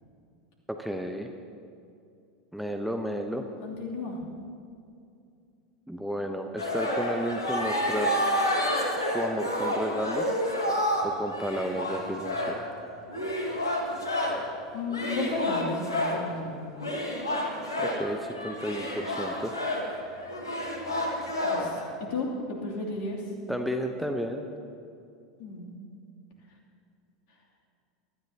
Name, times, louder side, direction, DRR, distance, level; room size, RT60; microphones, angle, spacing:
voice 1, 0.8-1.3 2.5-3.5 5.9-8.1 9.0-10.4 11.0-12.5 17.8-19.5 23.5-24.5, equal, ahead, 4 dB, 0.8 m, -32 dB
voice 2, 3.6-4.2 14.7-16.6 21.5-23.2 25.4-25.8, left 3 dB, 55° left, -2 dB, 2.9 m, -33 dB
sound 1, 6.6-14.5 14.9-16.3 16.8-21.8, equal, 80° left, 1.8 m, -29 dB
22.5 x 13.5 x 2.9 m, 2.5 s
figure-of-eight pair, 80°, 2 cm